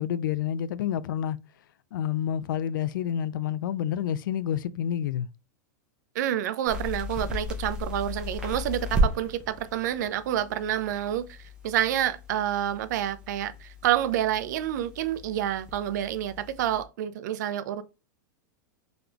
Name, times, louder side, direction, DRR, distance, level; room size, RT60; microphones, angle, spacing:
voice 1, 0.0-1.4 1.9-5.3, left 10 dB, 80° left, 0.4 m, -29 dB
voice 2, 6.1-11.4 11.6-17.8, right 11 dB, 60° right, 0.5 m, -28 dB
sound 1, 6.7-16.8, equal, 10° right, 0.8 m, -35 dB
3.8 x 3.4 x 2.9 m
supercardioid pair, 165°, 11 cm